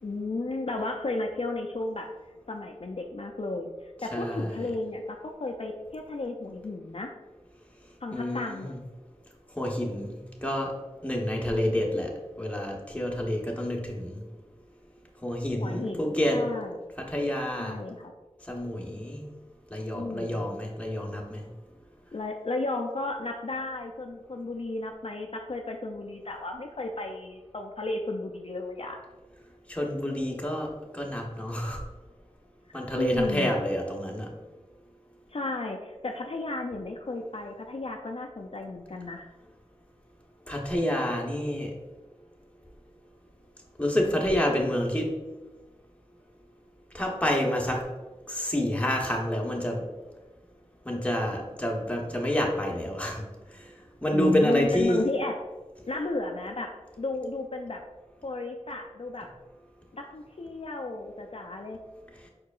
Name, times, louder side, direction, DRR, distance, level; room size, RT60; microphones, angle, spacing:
voice 1, 0.0-2.1 2.5-7.1 8.0-8.8 15.6-16.8 17.6-18.1 19.9-20.4 22.1-29.0 32.7-33.5 35.3-39.3 54.1-55.4 55.9-57.8 58.2-59.3 59.9-61.8, left 2 dB, 55° left, 2 dB, 0.4 m, -33 dB
voice 2, 4.1-4.7 8.1-8.8 9.6-10.2 10.4-10.7 11.0-14.2 15.2-16.4 17.0-17.8 18.5-19.3 19.7-21.5 29.7-31.8 32.7-34.3 40.5-41.7 43.8-45.1 46.9-47.8 48.3-49.8 50.8-53.2 53.5-53.7 54.0-55.0, equal, 10° left, -1 dB, 1.0 m, -28 dB
4.7 x 4.5 x 2.4 m, 1.2 s
wide cardioid pair, 40°, 12 cm